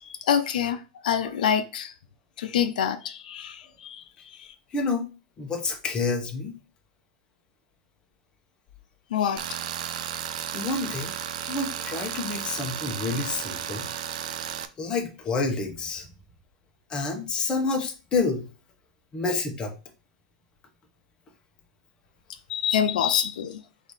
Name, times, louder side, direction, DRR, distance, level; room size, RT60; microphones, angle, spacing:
voice 1, 0.2-1.9 2.4-4.0 4.3-4.5 9.1-9.4 22.5-23.6, left 8 dB, 80° left, 8 dB, 0.6 m, -26 dB
voice 2, 4.7-5.0 5.4-6.6 10.5-11.1 11.5-13.8 14.8-16.1 16.9-18.4 19.1-19.7, left 3 dB, 20° left, 2 dB, 0.9 m, -28 dB
Tools, 9.4-14.7, right 10 dB, 65° right, 0.5 m, -34 dB
3.9 x 2.7 x 4.8 m, 0.33 s
supercardioid pair, 150°, 4 cm